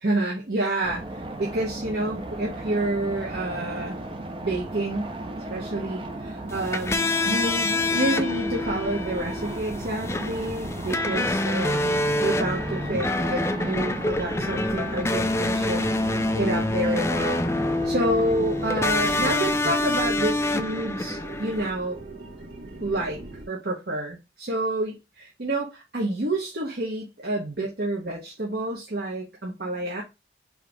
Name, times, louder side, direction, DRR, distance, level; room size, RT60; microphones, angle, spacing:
voice 1, 0.0-4.0 4.4-5.1 5.5-17.4 17.8-22.0 22.8-30.0, right 1 dB, 60° right, 1.0 m, -29 dB
sound 1, 0.8-19.4, right 2 dB, 30° right, 0.6 m, -36 dB
sound 2, 6.5-21.7, left 2 dB, 15° left, 0.3 m, -26 dB
sound 3, 8.4-23.5, right 2 dB, 80° right, 1.7 m, -40 dB
4.8 x 2.8 x 3.3 m
head